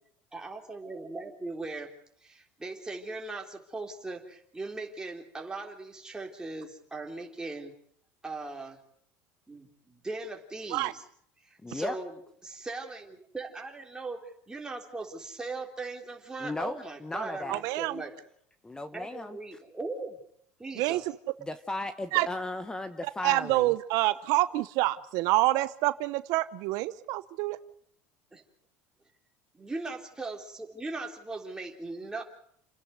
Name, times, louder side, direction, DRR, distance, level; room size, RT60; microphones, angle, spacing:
voice 1, 0.3-1.9 2.2-7.7 8.2-8.8 9.5-11.0 11.4-18.1 18.9-20.2 20.6-21.1 22.1-22.3 28.3-28.4 29.5-32.2, right 3 dB, 10° right, 2 dB, 3.7 m, -39 dB
voice 2, 11.6-12.0 16.4-17.6 18.6-19.4 21.4-23.7, left 2 dB, 10° left, 11 dB, 1.1 m, -36 dB
voice 3, 17.5-18.0 20.8-21.0 22.1-22.3 23.2-27.6, right 18 dB, 70° right, 14 dB, 0.9 m, -27 dB
29.5 x 10.5 x 9.5 m, 0.68 s
supercardioid pair, 115°, 7 cm